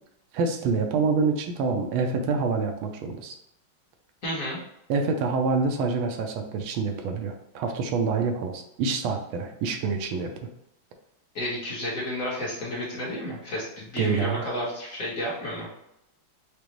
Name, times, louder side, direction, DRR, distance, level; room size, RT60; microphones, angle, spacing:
voice 1, 0.3-3.3 4.9-10.3 14.0-14.5, right 4 dB, 85° right, 4 dB, 1.4 m, -26 dB
voice 2, 4.2-4.6 11.3-15.7, left 1 dB, 50° left, -6 dB, 1.3 m, -31 dB
5.1 x 2.0 x 3.0 m, 0.82 s
omnidirectional pair, 2.2 m